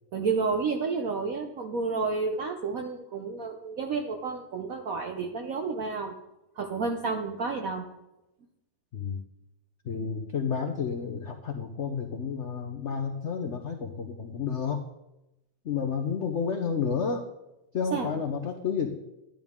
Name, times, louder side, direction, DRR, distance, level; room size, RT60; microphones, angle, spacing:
voice 1, 0.1-6.1 6.6-7.8 17.9-18.1, right 4 dB, 70° right, 4 dB, 0.8 m, -30 dB
voice 2, 9.8-14.8 15.6-17.2 17.7-18.9, left 6 dB, 75° left, 4 dB, 0.6 m, -30 dB
13.0 x 11.0 x 3.6 m, 0.93 s
omnidirectional pair, 2.3 m